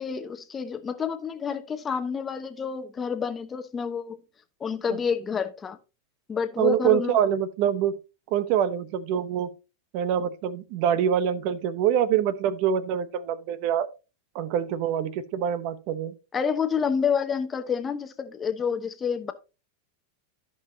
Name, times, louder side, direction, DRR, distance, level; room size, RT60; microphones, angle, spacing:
voice 1, 0.0-4.2 4.6-5.8 6.3-7.2 16.3-19.3, left 6 dB, 20° left, 1.0 m, -28 dB
voice 2, 6.6-8.0 8.3-9.5 9.9-13.9 14.3-16.1, right 9 dB, 55° right, 0.9 m, -25 dB
14.0 x 5.5 x 2.8 m
hypercardioid pair, 120°, 0 cm